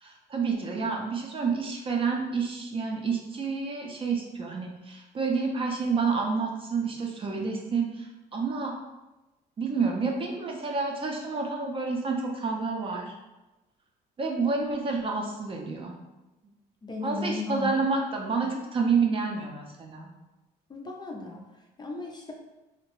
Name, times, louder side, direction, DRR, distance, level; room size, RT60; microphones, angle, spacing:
voice 1, 0.0-8.7 9.6-13.1 14.2-16.0 17.0-20.1, right 4 dB, 30° right, 1 dB, 0.5 m, -29 dB
voice 2, 16.8-17.7 20.7-22.3, left 3 dB, 25° left, 0 dB, 0.4 m, -35 dB
2.7 x 2.1 x 2.9 m, 1.1 s
cardioid pair, 110°, 17 cm